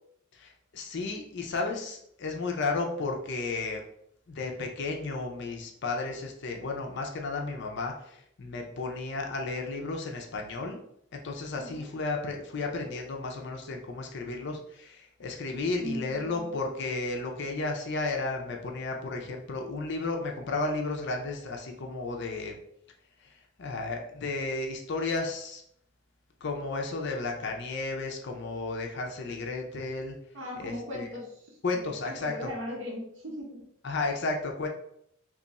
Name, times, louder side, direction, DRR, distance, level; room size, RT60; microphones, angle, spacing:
voice 1, 0.3-3.8 4.3-10.8 11.1-22.6 23.2-25.6 26.4-30.2 30.6-31.1 31.6-32.5 33.8-34.7, left 3 dB, 60° left, 2 dB, 0.5 m, -33 dB
voice 2, 15.8-16.5 30.3-33.7, left 1 dB, 70° right, -2 dB, 0.9 m, -38 dB
3.0 x 2.4 x 3.9 m, 0.71 s
head